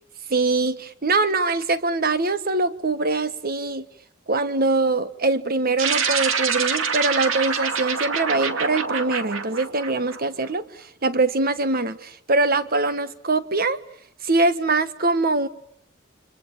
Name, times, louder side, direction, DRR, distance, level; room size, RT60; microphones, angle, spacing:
voice 1, 0.3-3.8 4.3-13.8 14.2-15.5, right 3 dB, 50° right, 1.5 m, -23 dB
sound 1, 5.8-10.5, right 5 dB, 75° right, 2.3 m, -26 dB
29.5 x 26.0 x 7.3 m
head